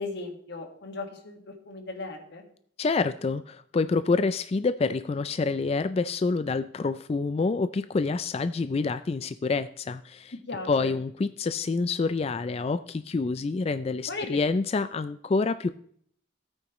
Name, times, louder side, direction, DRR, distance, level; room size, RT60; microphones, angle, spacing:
voice 1, 0.0-2.5 10.5-10.9 14.1-14.4, left 3 dB, 55° left, 4 dB, 1.7 m, -37 dB
voice 2, 2.8-10.3 10.7-15.7, left 4 dB, 30° left, 12 dB, 0.3 m, -27 dB
13.0 x 8.9 x 3.1 m, 0.63 s
head